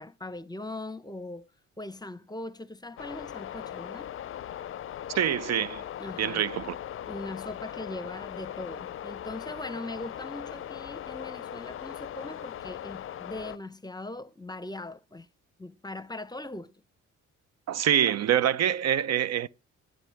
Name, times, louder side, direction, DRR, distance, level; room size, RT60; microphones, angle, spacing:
voice 1, 0.0-1.5 1.8-4.1 6.0-6.5 7.1-15.3 15.6-16.7, left 2 dB, 15° left, 0.8 m, -40 dB
sound 1, 3.0-13.6, left 10 dB, 45° left, 0.5 m, -39 dB
voice 2, 5.1-5.8 6.2-6.8 17.7-19.5, right 10 dB, 60° right, 0.6 m, -25 dB
21.0 x 7.9 x 3.5 m
cardioid pair, 90°, 30 cm